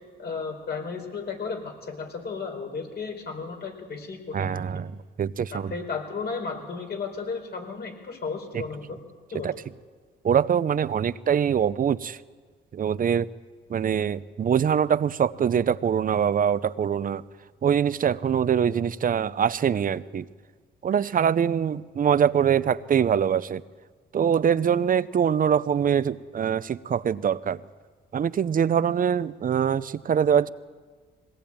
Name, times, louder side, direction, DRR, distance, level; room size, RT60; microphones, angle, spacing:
voice 1, 0.2-4.6 5.5-9.0 9.3-9.5, left 5 dB, 55° left, 4 dB, 4.4 m, -34 dB
voice 2, 4.3-5.7 8.5-8.6 9.4-9.5 10.2-12.2 12.7-13.3 13.7-17.2 17.6-20.3 20.8-23.6 24.1-27.6 28.1-30.5, right 8 dB, 45° right, 16 dB, 0.7 m, -23 dB
21.5 x 18.0 x 8.8 m, 1.5 s
cardioid pair, 90°, 20 cm